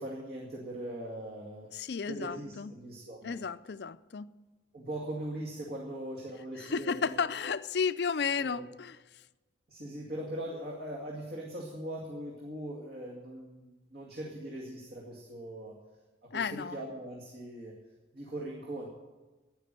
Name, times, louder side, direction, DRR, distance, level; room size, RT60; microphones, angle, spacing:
voice 1, 0.0-1.7 2.1-3.4 4.7-7.3 8.4-8.7 9.7-15.8 16.2-17.7 18.1-18.9, right 1 dB, 55° right, 2.2 m, -40 dB
voice 2, 1.7-2.7 3.2-4.3 6.6-9.0 16.3-16.8, left 5 dB, 60° left, 0.5 m, -33 dB
12.0 x 9.7 x 9.1 m
head